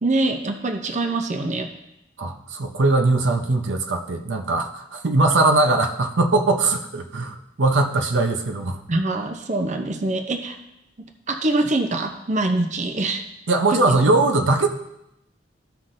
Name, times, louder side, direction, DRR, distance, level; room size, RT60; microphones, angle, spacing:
voice 1, 0.0-1.7 8.9-10.6 11.3-13.2 13.7-13.8, right 2 dB, 40° right, 5 dB, 0.7 m, -24 dB
voice 2, 2.2-8.8 13.5-14.7, right 2 dB, 80° right, 5 dB, 0.7 m, -20 dB
14.0 x 5.8 x 2.6 m, 0.85 s
head